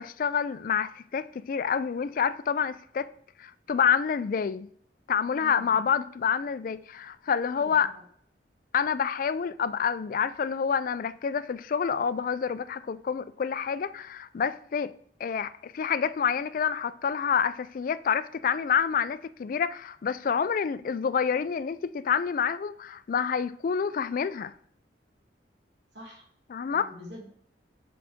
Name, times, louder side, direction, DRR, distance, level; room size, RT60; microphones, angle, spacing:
voice 1, 0.0-3.1 3.4-4.7 5.1-7.9 8.7-14.9 15.2-24.5 26.5-26.9, left 7 dB, 50° left, 0.3 m, -28 dB
voice 2, 5.4-5.7 7.5-8.0 25.9-26.2 26.7-27.3, equal, 70° right, 1.6 m, -45 dB
7.8 x 3.9 x 3.6 m
head